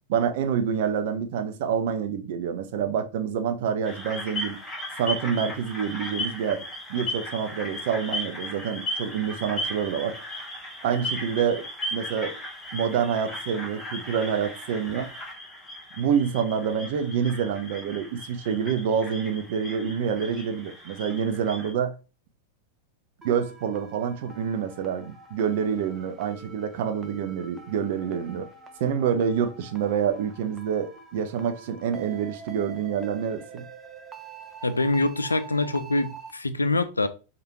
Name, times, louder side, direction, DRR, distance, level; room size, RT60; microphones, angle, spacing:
voice 1, 0.1-4.6 5.0-10.1 10.8-11.7 11.9-12.4 12.7-15.1 16.0-22.0 23.2-28.5 28.8-33.6, right 7 dB, 50° right, 0.6 m, -27 dB
sound 1, 3.8-21.7, left 1 dB, 10° left, 1.6 m, -36 dB
sound 2, 23.2-36.3, right 5 dB, 15° right, 0.7 m, -46 dB
voice 2, 34.6-37.1, left 2 dB, 80° left, 0.4 m, -25 dB
4.7 x 2.4 x 3.1 m
figure-of-eight pair, 90°, 0 cm